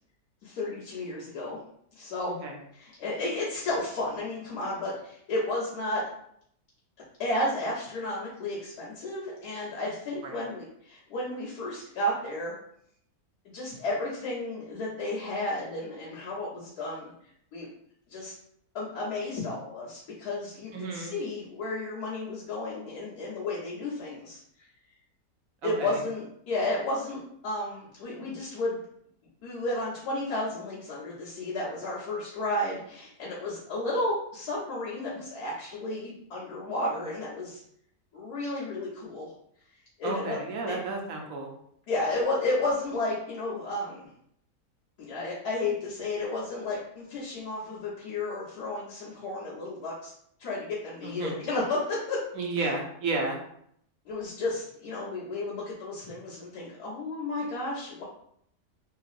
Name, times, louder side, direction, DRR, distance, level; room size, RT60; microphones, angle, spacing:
voice 1, 0.4-1.6 2.0-2.4 2.7-6.0 7.2-12.5 13.5-17.1 17.5-17.7 18.1-18.3 18.7-24.4 25.6-28.8 29.4-37.6 38.1-39.3 40.0-40.4 40.7-40.8 41.9-44.1 45.0-50.1 50.4-52.2 54.0-58.0, left 2 dB, 75° left, -12 dB, 1.7 m, -32 dB
voice 2, 20.7-21.1 25.6-26.0 40.0-41.5 51.0-51.4 52.4-53.4, right 3 dB, 70° right, 1 dB, 1.0 m, -32 dB
3.7 x 2.9 x 2.5 m, 0.69 s
omnidirectional pair, 1.6 m